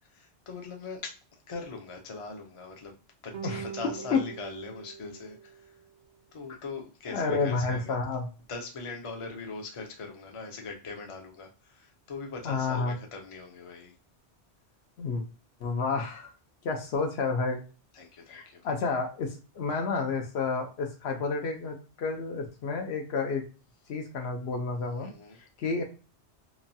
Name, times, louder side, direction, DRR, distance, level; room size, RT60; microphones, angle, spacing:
voice 1, 0.1-2.9 3.2-5.8 6.3-8.0 8.5-13.9 17.9-18.7 25.0-25.4, left 4 dB, 35° left, 2 dB, 0.6 m, -41 dB
sound 1, 3.3-5.9, right 8 dB, 55° right, 0.6 m, -42 dB
voice 2, 7.1-8.3 12.4-13.0 15.0-15.2 15.6-16.3 16.6-17.6 18.3-23.4 23.9-25.1 25.6-25.8, left 4 dB, 70° left, 3 dB, 0.8 m, -30 dB
3.0 x 2.2 x 2.6 m, 0.35 s
omnidirectional pair, 1.2 m